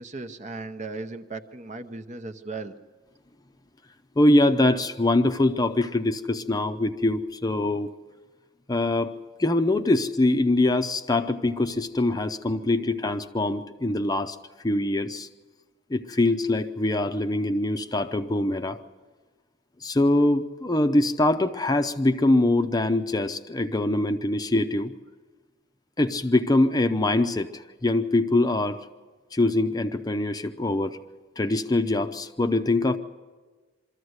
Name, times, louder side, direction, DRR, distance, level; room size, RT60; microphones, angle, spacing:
voice 1, 0.0-2.7 12.6-12.7, right 3 dB, 40° right, 9 dB, 0.8 m, -37 dB
voice 2, 4.2-7.9 8.7-9.1 9.4-14.4 14.6-15.3 15.9-18.8 19.8-24.9 26.0-27.5 27.8-28.8 29.3-31.0 31.4-33.0, left 2 dB, 20° left, 8 dB, 0.6 m, -23 dB
23.5 x 14.0 x 8.0 m, 1.4 s
head